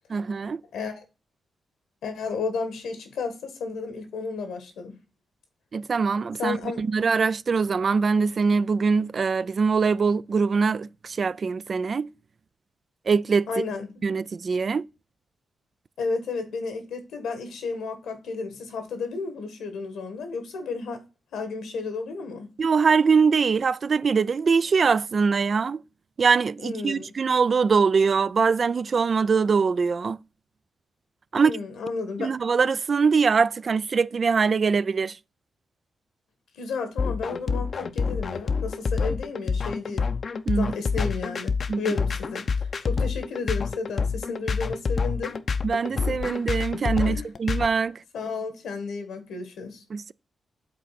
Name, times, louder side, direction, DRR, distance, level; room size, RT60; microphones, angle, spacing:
voice 1, 0.1-0.6 5.7-12.1 13.1-13.5 14.0-14.9 22.6-25.8 26.2-30.2 31.3-31.5 32.2-35.2 40.5-40.7 41.7-41.8 45.6-48.0 49.9-50.1, right 5 dB, 55° right, 0.3 m, -23 dB
voice 2, 0.7-1.0 2.0-5.0 6.4-6.8 13.5-13.9 16.0-21.0 21.3-22.5 26.6-27.1 31.3-32.3 36.5-40.1 40.5-45.4 47.1-47.2 48.1-49.8, left 4 dB, 85° left, 1.6 m, -32 dB
sound 1, 37.0-47.7, left 5 dB, 55° left, 0.6 m, -27 dB
7.6 x 4.0 x 5.7 m
cardioid pair, 60°, 0 cm